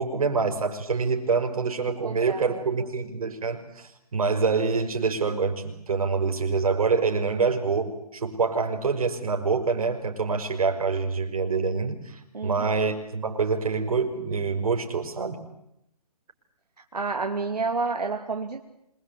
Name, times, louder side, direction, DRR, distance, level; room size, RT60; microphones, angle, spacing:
voice 1, 0.0-15.4, right 4 dB, 65° right, 4 dB, 5.6 m, -26 dB
voice 2, 2.0-2.6 12.3-12.7 16.9-18.6, right 4 dB, 90° right, 3 dB, 2.5 m, -29 dB
26.5 x 21.5 x 8.4 m, 0.82 s
hypercardioid pair, 155°, 20 cm